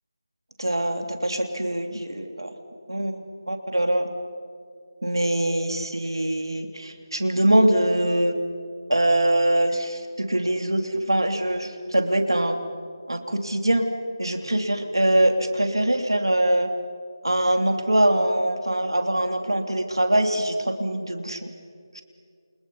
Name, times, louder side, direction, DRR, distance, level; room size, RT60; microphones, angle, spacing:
voice 1, 0.6-2.5 2.9-3.2 3.5-4.1 5.0-8.4 8.9-12.6 13.1-13.9 14.2-16.7 17.2-21.5 21.9-22.0, right 1 dB, 80° right, 5 dB, 3.1 m, -23 dB
29.0 x 29.0 x 5.6 m, 2.2 s
figure-of-eight pair, 160°, 2 cm